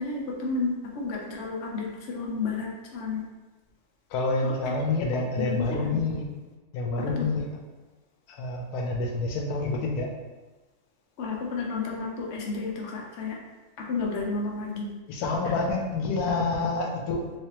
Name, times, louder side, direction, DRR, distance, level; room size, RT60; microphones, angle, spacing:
voice 1, 0.0-3.3 4.4-4.7 5.4-6.0 7.0-7.3 11.2-13.4 13.8-14.9, left 4 dB, 55° left, -2 dB, 0.9 m, -31 dB
voice 2, 4.1-6.3 6.7-7.5 8.3-10.1 15.1-17.2, left 3 dB, 90° left, 1 dB, 1.1 m, -28 dB
3.3 x 3.2 x 2.9 m, 1.2 s
omnidirectional pair, 1.6 m